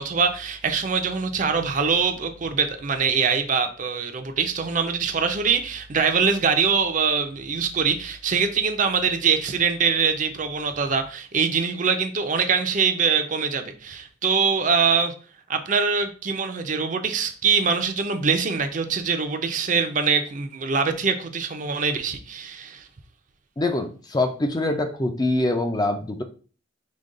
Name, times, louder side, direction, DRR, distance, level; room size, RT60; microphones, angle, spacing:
voice 1, 0.0-15.1 15.5-22.8, right 5 dB, 40° right, 7 dB, 0.5 m, -23 dB
voice 2, 23.6-26.2, left 2 dB, 20° left, 5 dB, 0.4 m, -24 dB
5.1 x 2.3 x 3.7 m, 0.38 s
head